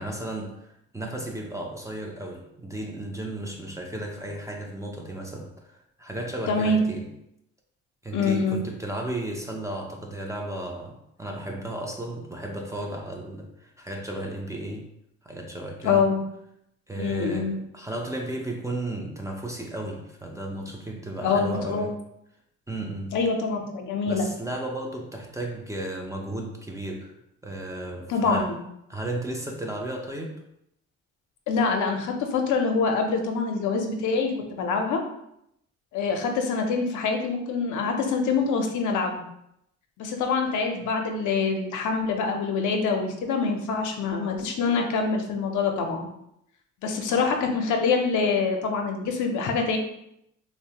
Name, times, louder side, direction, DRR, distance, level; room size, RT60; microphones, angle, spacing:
voice 1, 0.0-7.1 8.0-14.9 15.2-16.1 16.9-22.0 22.7-23.2 24.1-27.1 27.4-28.5 28.9-30.4, right 1 dB, 10° right, 0 dB, 0.4 m, -34 dB
voice 2, 6.5-6.8 8.1-8.6 15.8-16.2 17.0-17.5 21.2-21.8 23.1-24.2 28.1-28.6 31.5-35.0 35.9-39.2 40.0-46.1 46.8-49.8, left 4 dB, 75° left, 3 dB, 0.6 m, -25 dB
3.0 x 2.0 x 2.8 m, 0.78 s
cardioid pair, 90°, 30 cm